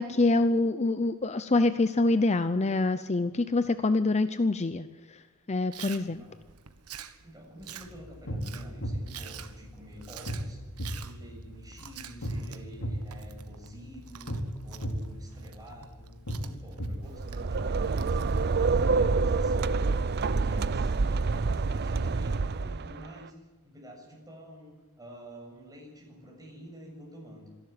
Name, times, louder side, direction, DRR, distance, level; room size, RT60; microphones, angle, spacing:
voice 1, 0.0-5.2 5.5-6.2, left 2 dB, 30° left, 12 dB, 0.6 m, -26 dB
Chewing mastication, 5.7-18.7, right 9 dB, 90° right, 1.4 m, -48 dB
voice 2, 6.0-6.4 7.2-10.6 10.9-14.3 14.6-18.2 18.6-23.4 23.6-27.5, equal, 15° right, 0 dB, 7.0 m, -48 dB
sound 1, 7.8-17.7, equal, 65° left, 3.6 m, -37 dB
sound 2, 17.0-23.1, right 4 dB, 45° right, 0.6 m, -27 dB
26.0 x 12.0 x 9.6 m, 1.4 s
head